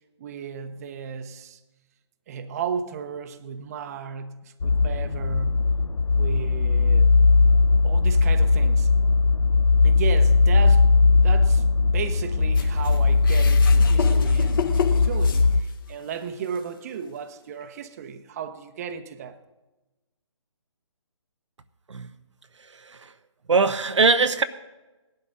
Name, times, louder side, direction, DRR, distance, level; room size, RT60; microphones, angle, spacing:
voice 1, 0.2-1.6 2.3-5.7 6.1-7.1 7.8-8.9 9.8-11.0 11.2-19.4, right 7 dB, 30° right, 0.9 m, -35 dB
sound 1, 4.6-15.6, left 3 dB, 75° left, 0.6 m, -19 dB
sound 2, 12.5-16.0 16.5-16.6 17.6-17.7, left 6 dB, 45° left, 1.5 m, -31 dB
voice 2, 23.5-24.4, right 4 dB, 75° right, 0.8 m, -21 dB
18.0 x 11.5 x 4.0 m
figure-of-eight pair, 150°, 16 cm